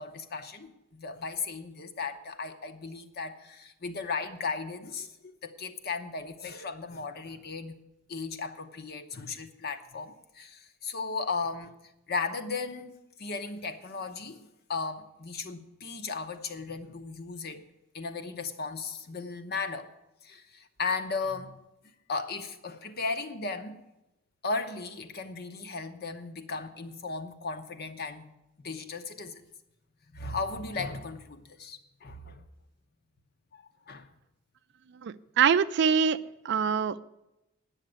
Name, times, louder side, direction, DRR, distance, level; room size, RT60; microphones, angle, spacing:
voice 1, 0.0-7.8 8.1-11.7 12.1-17.6 17.9-19.9 20.2-21.6 22.1-23.8 24.4-28.3 28.6-29.4 30.1-32.4 33.5-34.1, left 4 dB, 50° left, 8 dB, 0.9 m, -36 dB
voice 2, 35.0-36.2 36.4-37.0, right 7 dB, 55° right, 14 dB, 0.4 m, -24 dB
9.6 x 6.5 x 8.9 m, 0.91 s
head